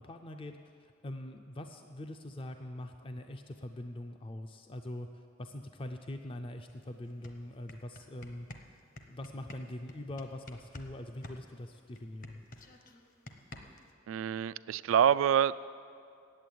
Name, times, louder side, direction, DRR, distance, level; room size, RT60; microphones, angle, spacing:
voice 1, 0.0-8.5 9.1-12.4, left 1 dB, 25° left, 6 dB, 0.4 m, -43 dB
sound 1, 6.7-6.8 7.1-10.9 11.2-13.9, left 1 dB, 45° left, 0.9 m, -49 dB
voice 2, 14.1-15.6, right 9 dB, 90° right, 16 dB, 0.3 m, -26 dB
8.6 x 8.2 x 9.3 m, 2.4 s
head